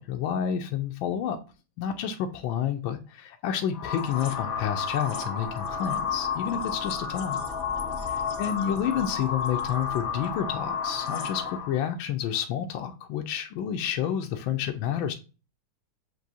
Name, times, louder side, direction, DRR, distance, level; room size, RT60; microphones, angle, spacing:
voice 1, 0.0-1.4 1.8-7.4 8.1-15.1, left 9 dB, 80° left, 1.4 m, -30 dB
sound 1, 3.7-11.8, left 6 dB, 60° left, 1.0 m, -31 dB
7.4 x 2.7 x 2.7 m
omnidirectional pair, 2.2 m